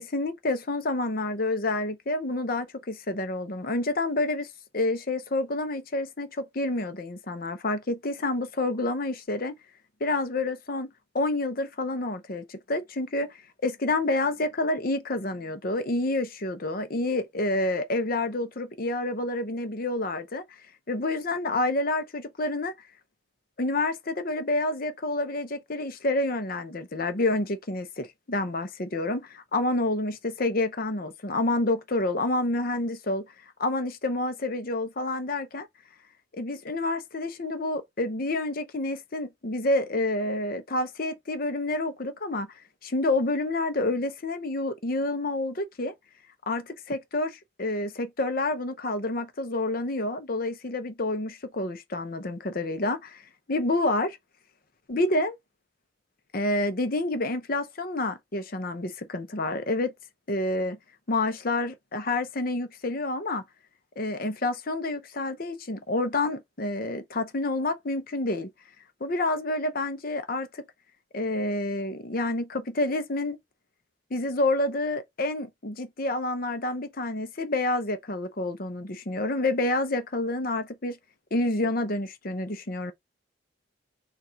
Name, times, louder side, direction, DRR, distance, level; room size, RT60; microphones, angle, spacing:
voice 1, 0.0-4.5 4.7-9.5 10.0-10.9 11.1-13.4 13.6-20.4 20.9-22.7 23.6-33.3 33.6-35.7 36.3-42.5 42.8-45.9 46.5-53.2 53.5-54.2 54.9-55.4 56.3-59.9 60.3-60.8 61.1-63.4 64.0-68.5 69.0-70.6 71.1-73.4 74.1-81.0 81.3-82.9, left 2 dB, 45° left, 0.7 m, -28 dB
4.2 x 2.5 x 4.3 m
head